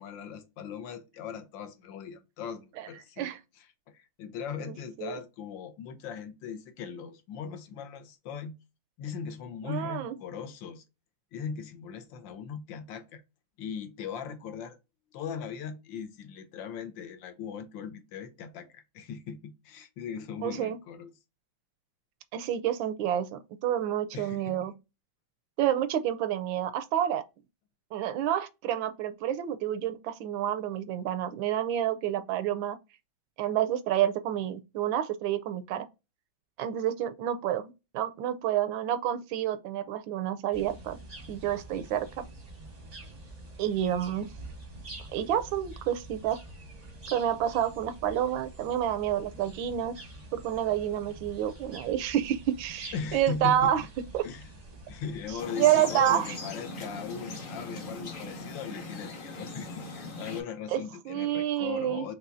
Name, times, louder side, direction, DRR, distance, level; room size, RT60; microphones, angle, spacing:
voice 1, 0.0-8.5 9.0-10.8 11.3-13.2 13.6-14.8 15.1-21.1 24.1-24.7 52.9-53.9 54.2-54.5 54.9-62.1, left 7 dB, 75° left, 1.4 m, -39 dB
voice 2, 4.6-5.2 9.6-10.2 20.4-20.8 22.3-24.7 25.6-27.2 27.9-32.8 33.4-35.9 36.6-41.0 41.3-42.3 43.6-44.3 45.1-46.4 47.1-49.9 50.3-53.8 54.1-54.2 55.6-56.3 60.7-62.1, right 11 dB, 80° right, 1.3 m, -29 dB
sound 1, 40.5-55.4, right 2 dB, 35° right, 0.6 m, -46 dB
sound 2, 55.4-60.4, left 2 dB, 50° left, 0.6 m, -40 dB
5.4 x 2.9 x 2.6 m
omnidirectional pair, 2.1 m